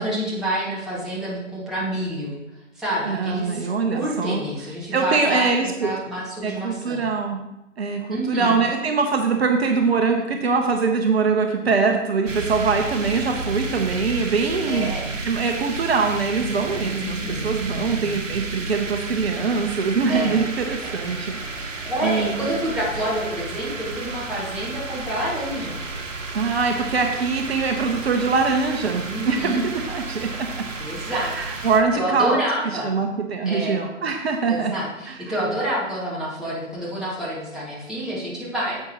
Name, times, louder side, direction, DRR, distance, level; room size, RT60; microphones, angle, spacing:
voice 1, 0.0-2.3 2.8-7.0 8.1-8.6 14.7-15.1 17.0-17.5 17.8-18.1 20.1-20.4 20.8-20.9 21.5-25.8 29.1-29.6 30.8-32.9 33.4-33.8 34.4-38.8, right 1 dB, ahead, -8 dB, 2.1 m, -28 dB
voice 2, 3.0-4.4 4.9-5.9 6.4-7.4 7.8-14.9 15.2-21.7 22.0-22.5 26.3-30.6 31.0-32.4 32.8-34.7 35.1-35.2, right 4 dB, 55° right, 3 dB, 1.1 m, -23 dB
sound 1, 12.3-31.8, right 3 dB, 70° right, 1.3 m, -32 dB
10.0 x 7.8 x 3.1 m, 0.93 s
figure-of-eight pair, 135°, 38 cm